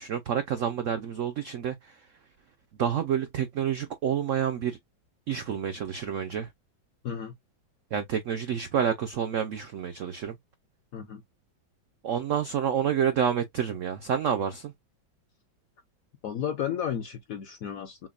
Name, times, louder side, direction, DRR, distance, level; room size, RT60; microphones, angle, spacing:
voice 1, 0.0-2.0 2.8-4.8 5.3-6.5 7.9-10.4 12.0-14.7, right 8 dB, 85° right, 0.6 m, -28 dB
voice 2, 7.0-7.3 10.9-11.2 16.2-18.1, left 9 dB, 70° left, 0.8 m, -33 dB
6.0 x 2.1 x 2.3 m
omnidirectional pair, 2.1 m